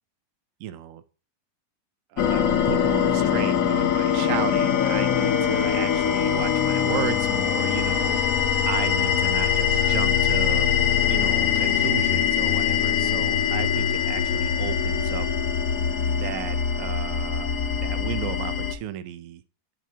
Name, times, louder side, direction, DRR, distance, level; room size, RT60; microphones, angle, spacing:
voice 1, 0.6-1.0 2.1-10.7 11.1-15.3 16.1-17.5 17.7-19.4, right 12 dB, 70° right, 0.8 m, -34 dB
sound 1, 2.2-18.7, left 8 dB, 65° left, 1.0 m, -23 dB
11.0 x 4.4 x 2.8 m
omnidirectional pair, 1.7 m